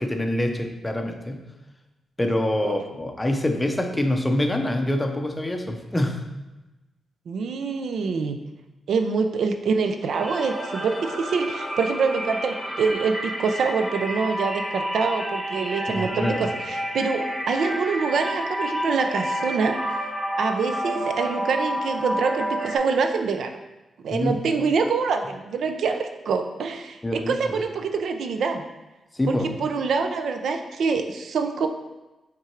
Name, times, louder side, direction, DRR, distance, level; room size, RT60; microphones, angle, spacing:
voice 1, 0.0-1.4 2.2-6.2 15.9-16.5 24.1-24.4 27.0-27.6 29.1-29.5, left 1 dB, 10° left, 4 dB, 0.5 m, -25 dB
voice 2, 7.3-8.4 8.9-19.8 20.4-23.5 24.0-28.6 29.3-31.7, right 5 dB, 70° right, 6 dB, 0.5 m, -25 dB
sound 1, 10.1-22.8, equal, 15° right, 1.5 m, -30 dB
6.1 x 3.7 x 4.4 m, 1.0 s
wide cardioid pair, 170°, 0 cm